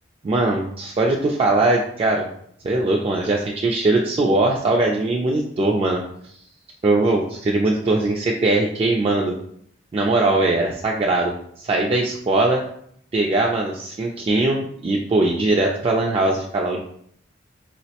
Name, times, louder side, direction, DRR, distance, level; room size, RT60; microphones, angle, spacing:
voice 1, 0.2-2.3 2.6-6.0 6.8-9.3 9.9-11.3 11.6-12.6 13.1-16.8, right 2 dB, 30° right, -1 dB, 0.3 m, -20 dB
4.3 x 2.0 x 2.8 m, 0.66 s
head